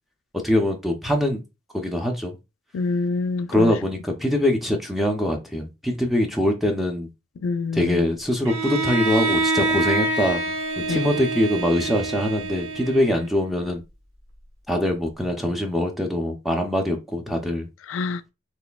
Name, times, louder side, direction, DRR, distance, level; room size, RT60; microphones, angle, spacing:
voice 1, 0.4-1.4 1.7-2.3 3.5-7.1 7.7-10.4 10.9-13.8 14.7-17.7, left 1 dB, ahead, 0.5 m, -23 dB
voice 2, 2.7-3.8 7.4-8.1 10.9-11.2 17.9-18.2, left 4 dB, 70° left, 0.4 m, -26 dB
Bowed string instrument, 8.4-13.5, right 3 dB, 75° right, 0.9 m, -26 dB
4.1 x 3.2 x 2.3 m
head